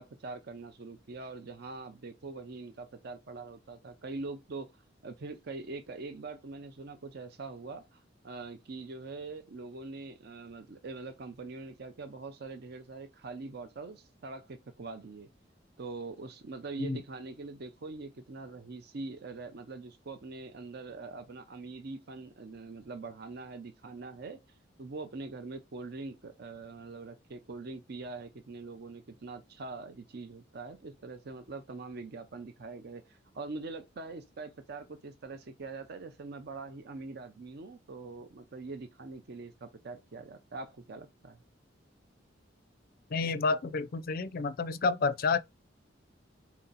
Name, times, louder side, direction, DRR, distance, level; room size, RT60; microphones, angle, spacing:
voice 1, 0.0-4.7 5.0-15.3 15.8-24.4 24.8-41.4, right 3 dB, 55° right, 0.6 m, -43 dB
voice 2, 43.1-45.4, left 4 dB, 50° left, 0.4 m, -29 dB
4.2 x 2.8 x 3.9 m
head